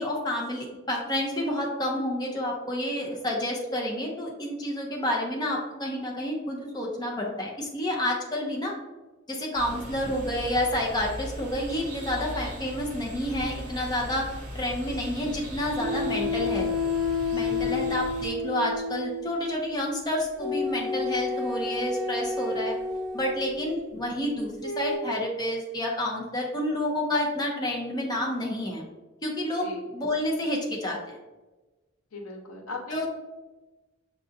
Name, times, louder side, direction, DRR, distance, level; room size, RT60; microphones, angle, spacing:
voice 1, 0.0-8.7 9.3-16.7 17.3-22.7 23.1-28.8 29.2-31.2 32.9-33.1, left 1 dB, 20° left, -2 dB, 0.6 m, -29 dB
sound 1, 9.5-18.3, equal, 35° right, 0.9 m, -39 dB
sound 2, 15.8-19.3 20.4-23.5 24.6-25.0, left 4 dB, 5° right, 1.5 m, -30 dB
voice 2, 17.6-17.9 29.6-29.9 32.1-33.1, left 1 dB, 85° left, 1 dB, 0.9 m, -39 dB
6.7 x 2.5 x 2.6 m, 1.2 s
head